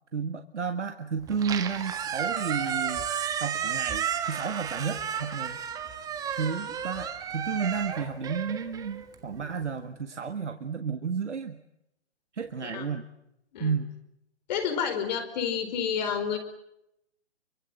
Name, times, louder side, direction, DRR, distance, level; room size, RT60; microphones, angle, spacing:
voice 1, 0.1-3.0 3.4-5.6 6.4-11.6 12.3-13.1 13.6-13.9, right 6 dB, 85° right, 7 dB, 1.9 m, -32 dB
Squeak, 1.3-9.5, right 8 dB, 10° right, 1.6 m, -32 dB
voice 2, 14.5-16.4, left 7 dB, 40° left, 8 dB, 4.7 m, -30 dB
30.0 x 24.0 x 7.9 m, 0.83 s
hypercardioid pair, 145°, 34 cm